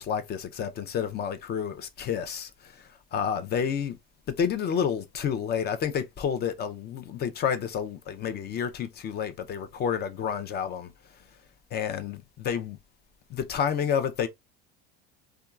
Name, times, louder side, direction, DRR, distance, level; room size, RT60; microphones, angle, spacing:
voice 1, 0.0-4.0 4.4-10.9 11.7-12.8 13.3-14.3, left 7 dB, 35° left, 0.6 m, -30 dB
2.7 x 2.3 x 2.3 m
supercardioid pair, 105°, 29 cm